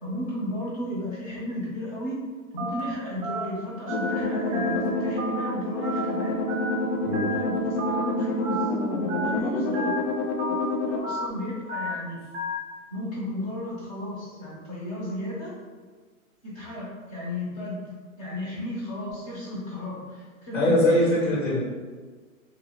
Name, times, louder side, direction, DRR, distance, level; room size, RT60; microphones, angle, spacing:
voice 1, 0.0-2.2 2.5-6.8 7.1-8.7 9.2-9.9 10.6-12.2 12.9-15.6 16.4-21.2, left 1 dB, 25° left, -5 dB, 0.7 m, -34 dB
Telephone, 2.6-2.8 3.2-3.4 3.9-4.1 4.5-4.8 5.2-5.4 5.8-6.1 6.5-6.7 7.1-7.4 7.8-8.0 8.4-8.7 9.1-9.3 9.7-10.0 10.4-10.6 11.0-11.3 11.7-11.9 12.3-12.6, right 1 dB, 35° right, 0.6 m, -31 dB
sound 1, 3.9-11.0, left 2 dB, 60° left, 0.5 m, -28 dB
voice 2, 20.5-21.6, left 1 dB, 75° left, -8 dB, 1.5 m, -22 dB
2.7 x 2.6 x 2.9 m, 1.4 s
hypercardioid pair, 160°, 42 cm